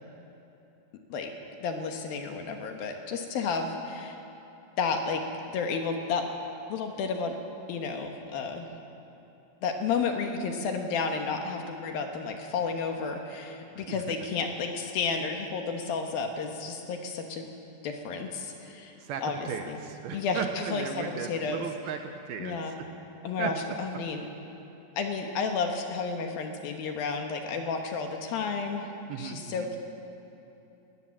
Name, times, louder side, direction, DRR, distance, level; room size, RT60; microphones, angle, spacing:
voice 1, 1.6-4.2 4.8-5.2 5.5-6.3 6.7-7.4 7.7-8.7 9.6-17.5 17.8-18.9 19.2-19.8 20.1-21.7 22.4-22.8 23.2-24.3 25.0-28.9 29.2-29.8, left 5 dB, 65° left, 4 dB, 2.8 m, -32 dB
voice 2, 19.5-22.6 23.4-23.5 29.1-29.7, right 8 dB, 75° right, 6 dB, 2.5 m, -36 dB
20.0 x 18.5 x 7.4 m, 2.9 s
omnidirectional pair, 4.9 m